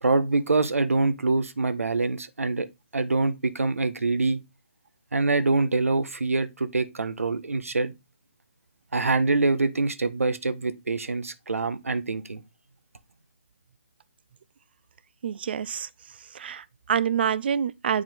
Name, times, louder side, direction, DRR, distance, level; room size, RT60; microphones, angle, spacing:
voice 1, 0.0-2.7 2.9-4.4 5.1-7.9 8.9-12.4, right 3 dB, 85° right, 1.4 m, -25 dB
voice 2, 15.2-15.9 16.3-18.0, right 8 dB, 45° right, 0.6 m, -27 dB
9.5 x 4.3 x 3.8 m
hypercardioid pair, 155°, 7 cm